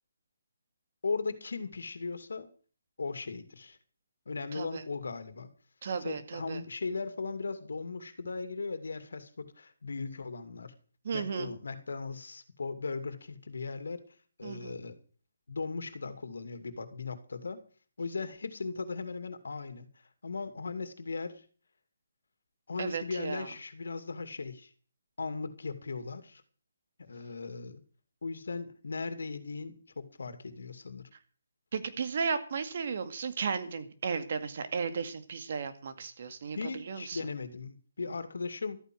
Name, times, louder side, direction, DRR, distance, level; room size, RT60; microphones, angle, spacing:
voice 1, 1.0-2.5 3.0-3.8 4.3-5.5 6.0-10.7 11.1-14.0 14.4-15.0 15.5-17.6 18.0-19.9 20.2-21.4 22.7-24.7 25.2-26.4 27.0-27.8 28.2-31.1 36.5-38.8, left 4 dB, 80° left, 10 dB, 2.5 m, -38 dB
voice 2, 4.5-4.8 5.8-6.6 11.0-11.5 14.4-14.7 22.8-23.5 31.7-37.2, right 5 dB, 45° right, 9 dB, 2.1 m, -35 dB
13.5 x 9.4 x 7.9 m, 0.41 s
hypercardioid pair, 170°, 0 cm